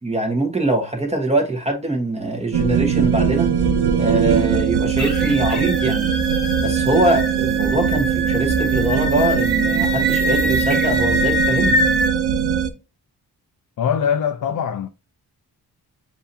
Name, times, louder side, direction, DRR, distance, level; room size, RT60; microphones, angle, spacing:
voice 1, 0.0-3.5 3.9-6.1 6.6-11.8, right 2 dB, 15° right, 1.3 m, -22 dB
sound 1, 2.5-12.7, right 7 dB, 85° right, 0.8 m, -21 dB
sound 2, 5.0-12.1, left 1 dB, ahead, 1.8 m, -24 dB
voice 2, 13.8-14.9, left 7 dB, 55° left, 0.5 m, -22 dB
6.9 x 2.8 x 2.7 m
wide cardioid pair, 135°, 38 cm